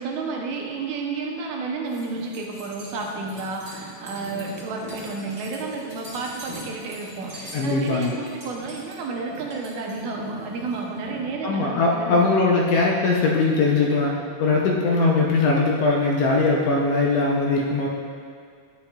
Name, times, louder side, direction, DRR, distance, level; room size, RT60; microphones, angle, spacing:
voice 1, 0.0-12.2 12.7-12.8, right 4 dB, 80° right, 0 dB, 2.2 m, -31 dB
sound 1, 1.9-11.3, equal, 35° right, 2.4 m, -41 dB
voice 2, 7.5-8.2 11.4-14.1 14.4-17.9, left 3 dB, 75° left, -2 dB, 1.5 m, -20 dB
10.5 x 7.0 x 2.3 m, 2.2 s
omnidirectional pair, 3.4 m